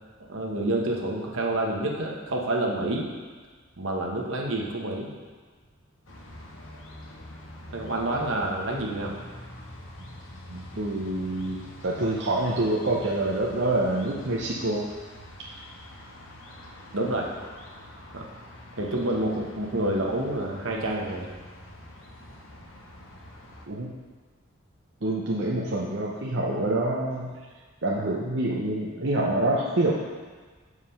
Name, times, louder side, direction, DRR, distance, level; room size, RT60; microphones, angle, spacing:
voice 1, 0.3-3.1 3.8-5.1 7.7-9.2 16.9-17.3 18.1-18.2 18.8-21.3, right 1 dB, 75° right, -1 dB, 1.2 m, -28 dB
sound 1, 6.1-23.7, left 1 dB, 65° left, 1.1 m, -45 dB
voice 2, 10.5-14.8 23.7-23.9 25.0-27.3 27.8-29.9, right 2 dB, 55° right, -4 dB, 0.8 m, -26 dB
7.5 x 4.8 x 5.6 m, 1.4 s
head